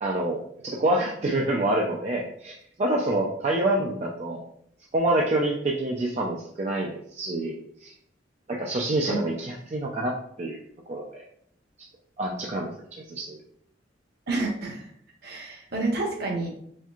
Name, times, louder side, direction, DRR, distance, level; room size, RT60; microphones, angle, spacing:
voice 1, 0.0-2.5 2.8-4.4 4.9-7.9 8.5-10.6 10.9-11.2 12.2-13.4, right 1 dB, 40° right, -1 dB, 0.5 m, -27 dB
voice 2, 14.3-14.9 15.2-16.5, right 2 dB, 60° right, 0 dB, 1.1 m, -29 dB
4.4 x 3.5 x 2.4 m, 0.68 s
head